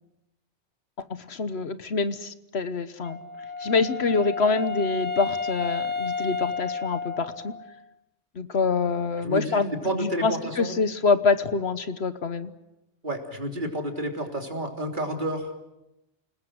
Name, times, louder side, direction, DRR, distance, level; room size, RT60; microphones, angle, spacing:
voice 1, 1.0-3.2 3.6-7.5 8.4-12.5, left 4 dB, 65° left, 12 dB, 1.3 m, -26 dB
Wind instrument woodwind instrument, 3.0-7.8, left 4 dB, 10° left, 1.5 m, -32 dB
voice 2, 9.2-10.8 13.0-15.5, right 1 dB, 45° right, 3 dB, 3.5 m, -30 dB
28.5 x 19.5 x 7.8 m, 0.91 s
omnidirectional pair, 1.2 m